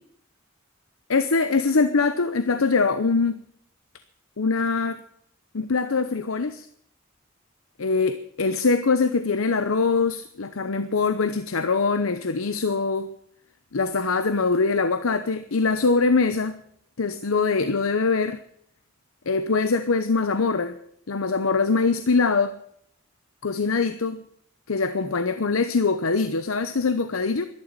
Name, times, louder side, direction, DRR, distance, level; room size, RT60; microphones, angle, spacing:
voice 1, 1.1-3.4 4.4-5.0 5.5-6.7 7.8-13.1 13.7-16.6 17.0-18.4 19.3-20.8 21.1-22.6 23.4-24.2 24.7-27.5, left 4 dB, 90° left, 11 dB, 0.8 m, -23 dB
12.0 x 11.5 x 9.6 m, 0.70 s
head